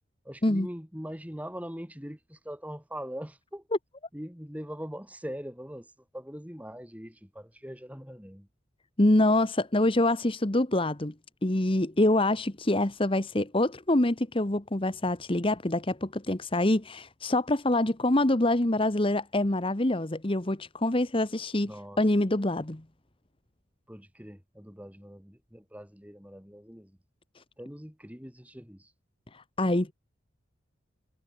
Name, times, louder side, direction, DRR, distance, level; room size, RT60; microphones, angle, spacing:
voice 1, 0.2-3.6 4.1-8.5 21.6-22.0 23.9-27.0 27.6-28.9, equal, 5° right, 6.3 m, -42 dB
voice 2, 9.0-11.1 11.4-21.7 22.0-22.8 29.3-29.9, left 1 dB, 25° left, 1.2 m, -25 dB
head